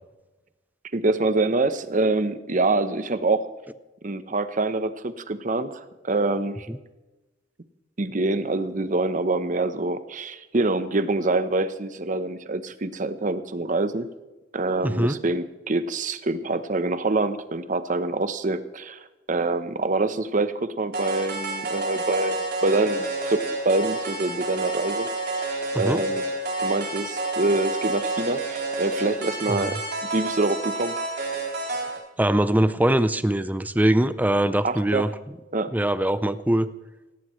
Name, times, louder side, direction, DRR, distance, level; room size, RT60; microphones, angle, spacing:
voice 1, 0.9-3.5 4.0-6.7 8.0-14.1 14.5-19.0 19.3-25.4 25.7-26.2 26.6-29.8 30.1-31.0 34.6-35.0 35.5-35.7, right 2 dB, 45° right, 11 dB, 0.9 m, -25 dB
voice 2, 14.8-15.2 25.7-26.0 29.5-29.7 32.2-35.1 35.7-36.7, right 1 dB, 10° right, 13 dB, 0.5 m, -22 dB
sound 1, 20.9-32.0, right 2 dB, 60° right, 4.5 m, -29 dB
18.0 x 16.5 x 3.2 m, 1.1 s
head